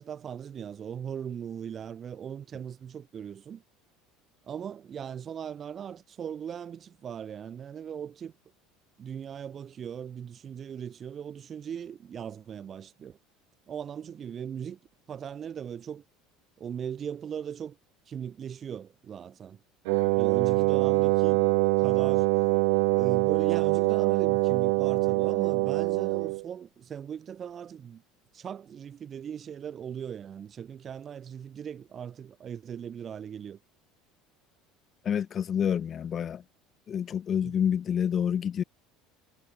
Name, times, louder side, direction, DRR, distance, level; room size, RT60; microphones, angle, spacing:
voice 1, 0.0-3.6 4.4-8.3 9.0-13.2 13.7-14.8 15.1-16.0 16.6-17.8 18.1-19.6 20.2-21.5 21.8-22.3 22.9-28.0 28.3-33.6 37.4-37.5, right 8 dB, 30° right, 6.6 m, -39 dB
Wind instrument woodwind instrument, 19.9-26.4, right 33 dB, 80° right, 2.7 m, -24 dB
voice 2, 35.0-36.4 36.9-38.6, left 8 dB, 30° left, 1.9 m, -28 dB
cardioid pair, 145°, 0 cm